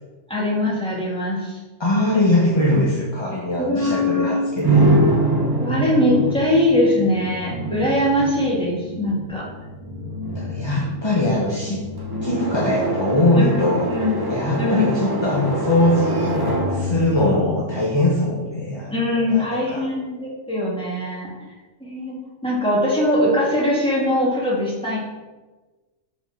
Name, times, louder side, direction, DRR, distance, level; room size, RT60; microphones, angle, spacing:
voice 1, 0.3-1.6 3.6-4.5 5.6-9.5 10.6-10.8 13.3-13.6 13.9-14.2 14.6-14.9 18.9-21.3 21.8-22.2 22.4-25.0, left 1 dB, 5° left, -6 dB, 2.0 m, -21 dB
voice 2, 1.8-4.9 10.3-11.8 12.2-13.9 14.3-16.3 16.7-19.9, left 1 dB, 25° left, -4 dB, 0.9 m, -21 dB
sound 1, 4.6-18.4, right 1 dB, 20° right, 1.0 m, -25 dB
5.1 x 4.3 x 5.9 m, 1.2 s
omnidirectional pair, 1.3 m